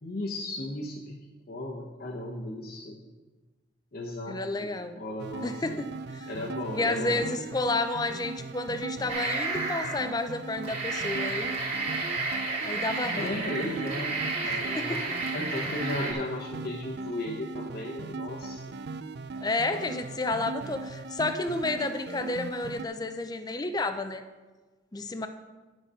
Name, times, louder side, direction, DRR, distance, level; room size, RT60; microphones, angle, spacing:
voice 1, 0.0-3.0 3.9-4.7 4.9-5.8 6.3-7.2 13.1-18.7, left 1 dB, 50° left, -2 dB, 1.0 m, -36 dB
voice 2, 4.3-5.0 5.4-6.3 6.7-11.7 12.6-13.4 14.7-15.0 19.4-24.2 24.9-25.3, left 2 dB, 20° left, 8 dB, 0.5 m, -31 dB
sound 1, 5.2-22.8, right 3 dB, 60° right, 0.4 m, -39 dB
sound 2, 9.1-10.1 10.5-16.1, right 3 dB, 35° right, 1.8 m, -32 dB
9.9 x 6.3 x 5.5 m, 1.2 s
head